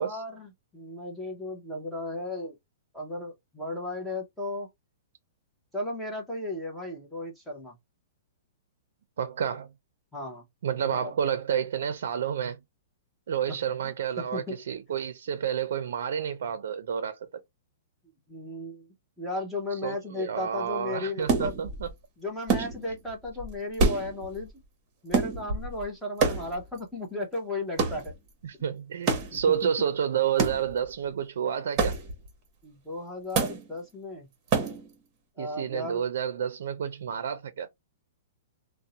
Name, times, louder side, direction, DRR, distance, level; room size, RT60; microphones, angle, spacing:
voice 1, 0.0-2.6 2.9-4.7 5.7-7.7 10.1-10.4 10.8-11.1 13.5-13.6 13.8-14.6 18.3-18.9 19.2-21.5 22.2-24.5 25.0-28.1 29.5-29.7 32.6-34.3 35.4-36.0, left 2 dB, 5° left, 0.7 m, -35 dB
voice 2, 9.2-9.7 10.6-12.6 13.3-17.2 19.7-21.9 22.6-22.7 28.4-32.0 35.4-37.7, right 8 dB, 70° right, 0.4 m, -30 dB
sound 1, 21.3-21.9 22.5-23.1 23.4-23.5 23.7-24.5 25.1-25.8 26.2-26.8 27.8-28.1 29.1-29.4 30.4-30.9 31.8-32.3 33.3-33.7 34.5-34.9, right 4 dB, 25° right, 0.9 m, -27 dB
2.5 x 2.0 x 2.8 m
hypercardioid pair, 160°, 0 cm